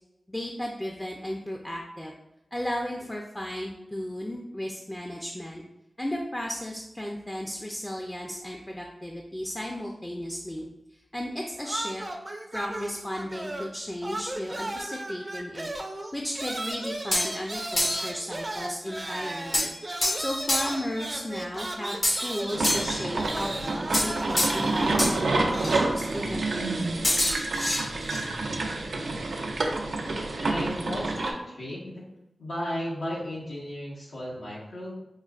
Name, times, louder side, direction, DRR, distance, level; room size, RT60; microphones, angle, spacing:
voice 1, 0.3-2.1 2.5-5.6 6.0-10.7 11.1-12.0 12.5-15.7 16.1-19.7 20.1-26.6, left 1 dB, 20° left, 0 dB, 0.5 m, -34 dB
sound 1, 11.6-13.8 14.0-26.0, right 1 dB, 35° right, 0.5 m, -36 dB
sound 2, 16.7-17.4 17.8-18.1 19.5-20.9 22.0-23.1 23.9-24.7 25.0-25.2 25.6-25.7 27.0-28.2, left 1 dB, 55° left, 0.9 m, -27 dB
sound 3, 22.5-31.3, right 2 dB, 90° right, 0.4 m, -28 dB
voice 2, 30.3-32.0 32.4-35.0, equal, 90° left, -6 dB, 1.3 m, -35 dB
5.3 x 2.2 x 2.4 m, 0.93 s
cardioid pair, 45°, 0 cm